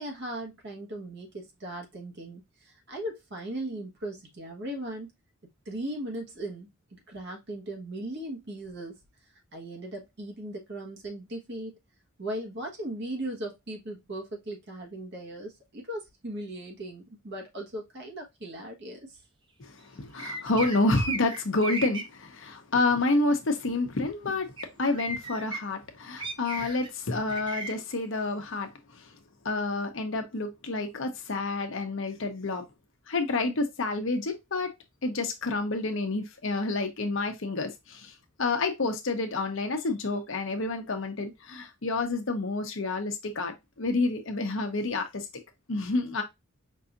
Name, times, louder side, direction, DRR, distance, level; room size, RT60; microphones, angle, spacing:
voice 1, 0.0-5.1 5.6-9.0 9.5-11.8 12.2-19.2, right 1 dB, 55° right, 1.4 m, -38 dB
voice 2, 19.6-24.5 24.8-29.1 29.4-32.6 33.1-34.7 35.0-45.3 45.7-46.2, left 3 dB, 60° left, 0.8 m, -29 dB
sound 1, 20.2-22.0 24.6-24.7 24.9-25.6 26.2-26.9 27.3-27.7, right 2 dB, 25° right, 0.6 m, -35 dB
5.4 x 2.7 x 2.6 m
head